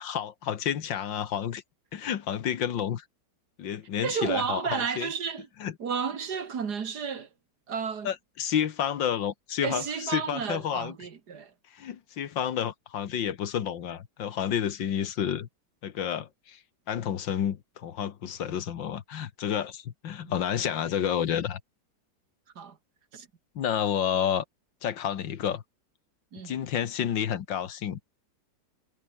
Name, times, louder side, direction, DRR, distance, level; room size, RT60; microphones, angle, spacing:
voice 1, 0.0-1.6 1.9-3.0 3.6-5.1 5.6-5.7 8.0-11.0 11.7-15.5 15.8-16.6 16.9-21.6 23.6-24.4 24.8-25.6 26.4-28.0, left 9 dB, 75° left, 2.0 m, -30 dB
voice 2, 4.0-5.5 5.8-7.3 7.7-8.1 9.6-11.5 20.2-20.4 22.6-22.8 23.1-23.3 26.3-26.5, right 6 dB, 60° right, 2.3 m, -32 dB
omnidirectional pair, 2.0 m